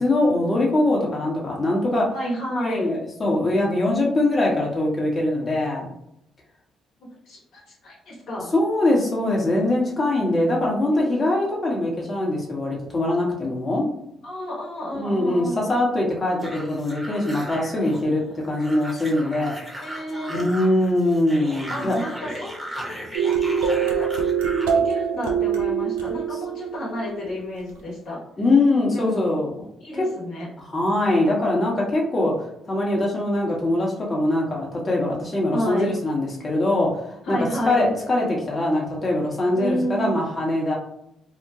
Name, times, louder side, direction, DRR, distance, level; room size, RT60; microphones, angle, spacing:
voice 1, 0.0-2.1 2.6-5.9 8.5-13.9 15.0-19.5 20.3-22.0 28.4-29.6 30.0-30.1 30.7-37.4 37.6-40.7, left 1 dB, 35° left, -3 dB, 0.9 m, -22 dB
voice 2, 2.1-2.9 7.2-8.5 10.9-11.3 14.2-16.0 19.8-20.5 21.7-24.1 24.7-28.2 28.9-29.2 29.8-30.5 35.5-35.9 37.2-37.9 39.5-40.2, equal, 65° left, -4 dB, 1.0 m, -31 dB
sound 1, 16.4-24.8, equal, 15° right, 0.9 m, -37 dB
sound 2, 23.1-27.6, right 7 dB, 80° right, 0.4 m, -24 dB
2.8 x 2.1 x 2.6 m, 0.78 s
hypercardioid pair, 45°, 0 cm